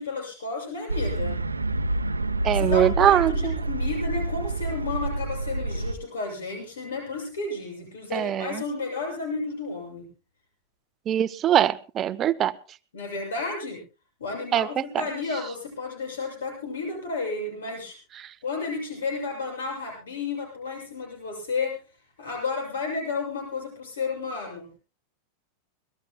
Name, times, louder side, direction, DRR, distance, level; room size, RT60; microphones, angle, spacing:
voice 1, 0.0-1.4 2.5-10.1 12.9-13.8 14.2-18.0 18.4-21.8 22.2-24.8, left 4 dB, 65° left, 1 dB, 7.2 m, -32 dB
sound 1, 0.9-5.9, right 2 dB, 80° right, 0.8 m, -28 dB
voice 2, 2.4-3.6 8.1-8.6 11.1-12.5 14.5-15.0 18.2-18.3, right 11 dB, 30° right, 15 dB, 0.7 m, -23 dB
25.0 x 18.5 x 2.2 m, 0.33 s
figure-of-eight pair, 90°, 0 cm